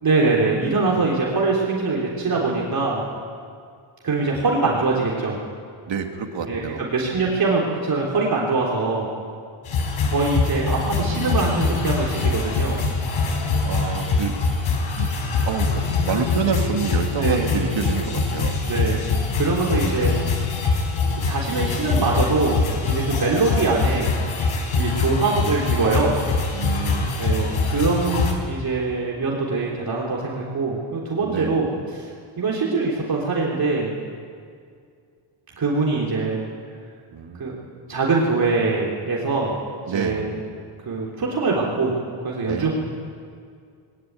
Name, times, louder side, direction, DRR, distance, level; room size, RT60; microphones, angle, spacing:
voice 1, 0.0-3.0 4.0-5.4 6.5-9.1 10.0-12.8 17.2-17.5 18.7-19.0 19.3-20.1 20.7-20.8 21.2-24.1 24.7-26.1 27.2-33.9 35.6-36.5 37.4-37.5 37.9-39.6 39.9-40.3 40.8-41.9 42.2-42.7, right 3 dB, 45° right, -3 dB, 3.4 m, -23 dB
voice 2, 5.9-6.9 13.6-14.4 15.0-15.1 15.4-18.5 26.5-27.2 31.2-31.6 37.1-37.5 39.9-40.2 42.5-42.7, right 6 dB, 60° right, 3 dB, 2.7 m, -28 dB
sound 1, 9.6-28.3, left 4 dB, 75° left, 4.4 m, -23 dB
20.5 x 19.0 x 9.4 m, 2.2 s
cardioid pair, 115°, 50 cm